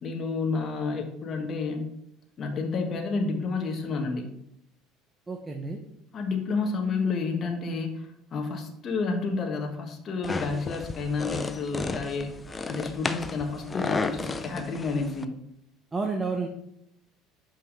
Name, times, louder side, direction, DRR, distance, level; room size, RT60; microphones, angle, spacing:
voice 1, 0.0-1.8 2.4-4.3 6.1-12.3 12.7-15.3, left 4 dB, 45° left, 3 dB, 1.4 m, -30 dB
voice 2, 5.3-5.8 15.9-16.5, right 4 dB, 20° right, 3 dB, 1.0 m, -30 dB
sound 1, 10.2-15.3, left 3 dB, 20° left, 0.6 m, -33 dB
5.8 x 5.6 x 5.4 m, 0.78 s
hypercardioid pair, 80°, 0 cm